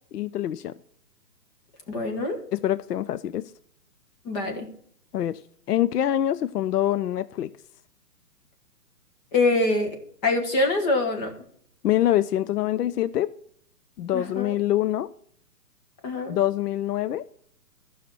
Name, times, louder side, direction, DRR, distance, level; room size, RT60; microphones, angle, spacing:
voice 1, 0.1-0.7 2.5-3.4 5.1-5.4 5.7-7.5 11.8-13.3 14.0-15.1 16.3-17.3, left 12 dB, 75° left, 0.6 m, -25 dB
voice 2, 1.9-2.4 4.2-4.7 9.3-10.0 10.2-11.3 14.1-14.5 16.0-16.4, left 2 dB, 25° left, 1.5 m, -24 dB
12.5 x 5.8 x 6.1 m
hypercardioid pair, 150°, 47 cm